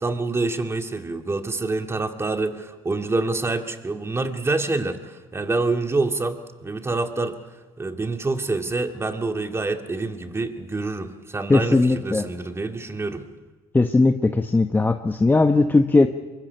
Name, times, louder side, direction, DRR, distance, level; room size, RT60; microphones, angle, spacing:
voice 1, 0.0-7.4 7.8-13.2, right 3 dB, 20° right, 5 dB, 2.3 m, -26 dB
voice 2, 11.5-12.2 13.7-16.1, left 3 dB, 15° left, 6 dB, 1.1 m, -18 dB
23.5 x 23.0 x 5.8 m, 1.3 s
supercardioid pair, 70°, 12 cm